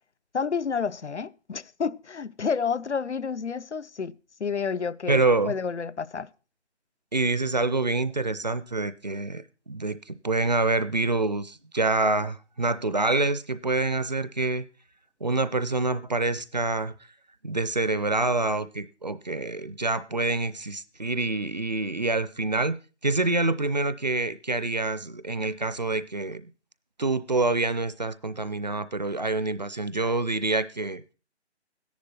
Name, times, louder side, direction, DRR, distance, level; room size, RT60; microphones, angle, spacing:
voice 1, 0.3-4.1 4.4-6.3, left 6 dB, 80° left, 0.7 m, -30 dB
voice 2, 5.1-5.5 7.1-14.7 15.2-16.9 17.4-22.8 23.0-26.5 27.0-31.0, right 3 dB, 40° right, 0.5 m, -26 dB
14.0 x 10.5 x 4.1 m
figure-of-eight pair, 155°, 34 cm